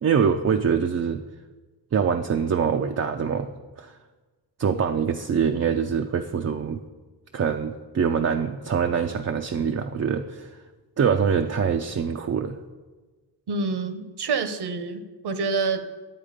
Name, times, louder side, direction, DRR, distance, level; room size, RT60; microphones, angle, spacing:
voice 1, 0.0-1.2 1.9-3.5 3.8-3.9 4.6-6.8 7.3-10.5 11.0-12.6, right 7 dB, 40° right, 5 dB, 0.5 m, -24 dB
voice 2, 13.5-15.8, right 4 dB, 65° right, 9 dB, 1.0 m, -27 dB
10.5 x 8.1 x 5.0 m, 1.3 s
wide cardioid pair, 105°, 42 cm